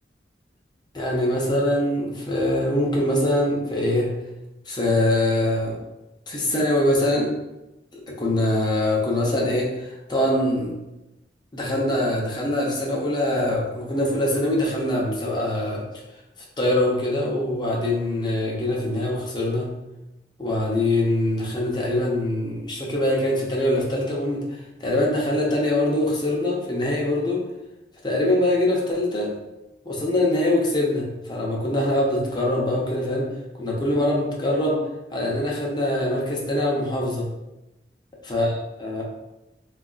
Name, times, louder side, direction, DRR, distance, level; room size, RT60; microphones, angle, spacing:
voice 1, 0.9-4.1 4.7-5.8 6.3-7.3 7.9-10.7 11.5-15.9 16.6-19.7 20.4-27.4 28.0-29.3 29.9-33.3 33.6-34.8 35.1-37.3 38.2-39.0, left 1 dB, 25° left, -3 dB, 0.6 m, -23 dB
3.9 x 2.4 x 2.3 m, 0.97 s
head